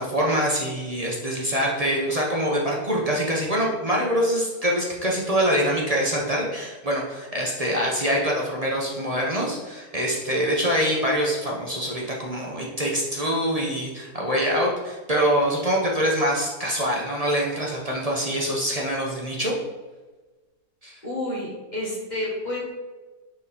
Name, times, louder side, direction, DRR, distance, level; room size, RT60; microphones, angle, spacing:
voice 1, 0.0-19.5 20.8-20.9, equal, 25° right, -2 dB, 0.9 m, -24 dB
voice 2, 21.0-22.6, left 1 dB, 25° left, -4 dB, 1.9 m, -30 dB
7.0 x 4.3 x 4.3 m, 1.2 s
omnidirectional pair, 1.7 m